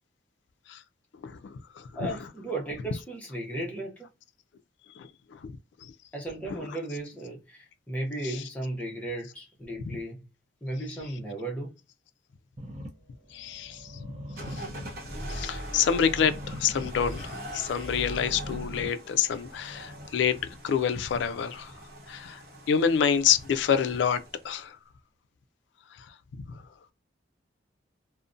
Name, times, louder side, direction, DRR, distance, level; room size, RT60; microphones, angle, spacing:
voice 1, 1.2-2.1 5.0-5.1 5.4-5.6 13.3-14.1 14.4-14.6 15.3-20.4 20.6-21.7 22.1-22.4 22.7-24.8 26.3-26.5, left 7 dB, 70° left, 0.3 m, -27 dB
voice 2, 1.9-4.1 6.1-10.2 10.6-11.8, right 1 dB, 5° left, 0.6 m, -35 dB
sound 1, 12.6-20.5, equal, 35° right, 0.5 m, -43 dB
sound 2, 14.4-24.6, equal, 50° right, 0.9 m, -41 dB
2.4 x 2.1 x 2.5 m
head